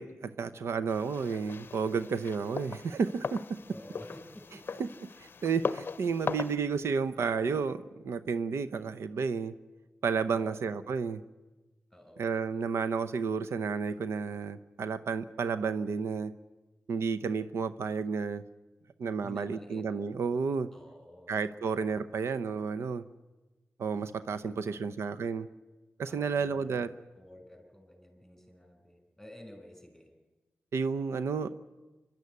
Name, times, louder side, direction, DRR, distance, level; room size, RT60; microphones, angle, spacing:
voice 1, 0.0-3.6 4.8-5.1 5.4-9.5 10.0-11.2 12.2-16.3 16.9-18.4 19.0-20.7 21.3-23.0 23.8-25.5 26.0-26.9 30.7-31.5, right 5 dB, 90° right, 12 dB, 0.7 m, -31 dB
sound 1, 0.9-6.6, left 5 dB, 55° left, 0.6 m, -39 dB
voice 2, 3.7-4.8 10.3-11.0 11.9-12.6 19.2-19.9 20.7-21.7 24.2-25.0 26.0-30.1, left 1 dB, ahead, 5 dB, 5.1 m, -52 dB
26.5 x 12.0 x 9.6 m, 1.2 s
wide cardioid pair, 100°, 4 cm